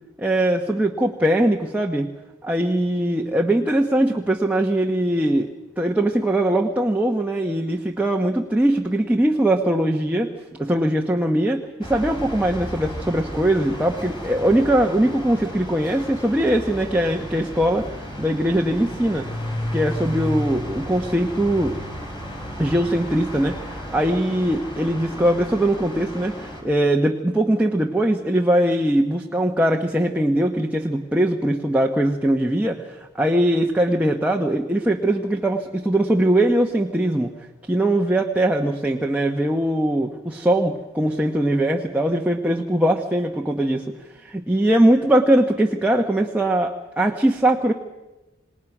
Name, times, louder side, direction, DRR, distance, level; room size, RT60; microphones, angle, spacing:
voice 1, 0.2-2.1 2.4-5.5 5.8-10.3 10.6-17.9 18.2-19.3 19.7-21.8 22.6-37.3 37.7-43.8 44.2-47.7, right 1 dB, 10° right, 1 dB, 1.1 m, -21 dB
sound 1, 11.8-26.6, equal, 25° left, 5.0 m, -33 dB
27.5 x 19.5 x 6.1 m, 1.1 s
head